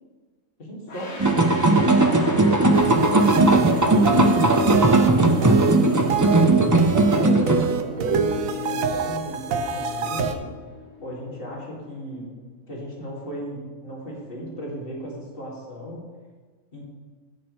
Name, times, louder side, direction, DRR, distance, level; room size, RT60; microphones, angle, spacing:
voice 1, 0.6-4.6 5.1-6.3 6.8-10.5 11.0-12.3 12.7-16.0 16.7-16.8, equal, 40° left, -4 dB, 2.6 m, -35 dB
sound 1, 0.9-11.8, left 3 dB, 65° left, 1.7 m, -35 dB
sound 2, 1.2-7.7, right 2 dB, 30° right, 0.3 m, -18 dB
sound 3, 2.7-10.3, right 4 dB, 80° right, 1.1 m, -27 dB
16.5 x 6.5 x 3.3 m, 1.4 s
omnidirectional pair, 1.4 m